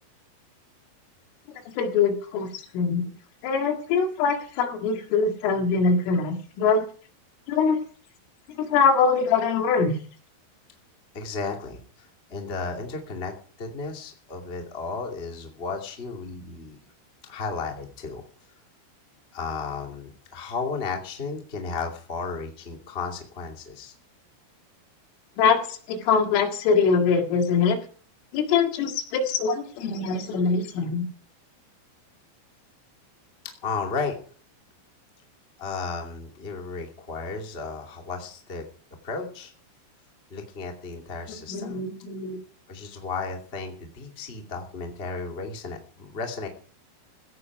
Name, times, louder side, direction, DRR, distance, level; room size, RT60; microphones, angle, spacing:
voice 1, 1.8-3.1 3.4-6.9 7.5-7.8 8.7-10.0 25.4-27.8 28.3-31.1 41.5-42.4, left 5 dB, 85° left, 4 dB, 4.5 m, -23 dB
voice 2, 11.1-16.8 17.2-18.2 19.3-23.9 33.6-34.2 35.6-38.7 39.0-39.5 40.3-41.8 42.7-46.5, left 4 dB, 25° left, 2 dB, 1.3 m, -34 dB
16.0 x 11.0 x 4.8 m, 0.44 s
omnidirectional pair, 5.7 m